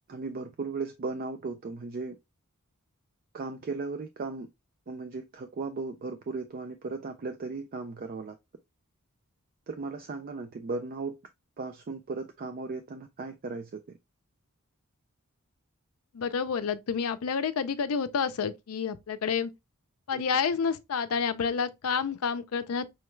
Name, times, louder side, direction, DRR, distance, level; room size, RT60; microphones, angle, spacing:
voice 1, 0.1-2.2 3.3-4.5 4.9-8.4 9.7-11.2 11.6-13.8 20.1-20.2, right 3 dB, 40° right, 0.4 m, -36 dB
voice 2, 16.1-19.5 20.1-22.9, left 6 dB, 75° left, 0.5 m, -29 dB
5.6 x 2.2 x 3.0 m
head